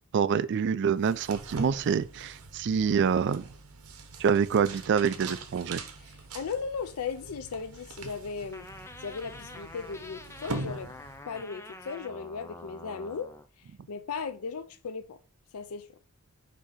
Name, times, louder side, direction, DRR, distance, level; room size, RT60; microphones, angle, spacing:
voice 1, 0.1-3.4 4.2-5.8, right 6 dB, 55° right, 0.4 m, -26 dB
sound 1, 1.0-11.5, right 3 dB, 75° right, 1.0 m, -42 dB
voice 2, 6.0-8.7 9.0-10.9 11.2-13.3 13.9-15.2 15.5-15.9, left 5 dB, 70° left, 0.5 m, -37 dB
sound 2, 8.5-13.5, left 2 dB, 10° left, 0.4 m, -46 dB
6.1 x 2.8 x 5.5 m
head